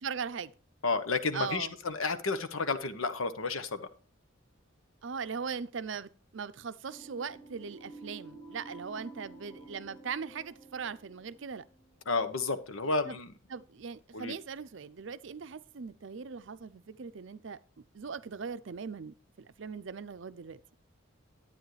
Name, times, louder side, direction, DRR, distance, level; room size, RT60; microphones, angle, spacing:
voice 1, 0.0-0.5 1.3-1.7 5.0-11.7 13.0-13.2 13.5-17.6 17.9-20.8, right 6 dB, 65° right, 0.5 m, -40 dB
voice 2, 0.8-3.8 12.1-13.3 14.1-14.3, left 3 dB, 85° left, 1.0 m, -31 dB
sound 1, 6.9-12.2, right 2 dB, 25° left, 3.4 m, -51 dB
10.5 x 9.2 x 3.2 m
head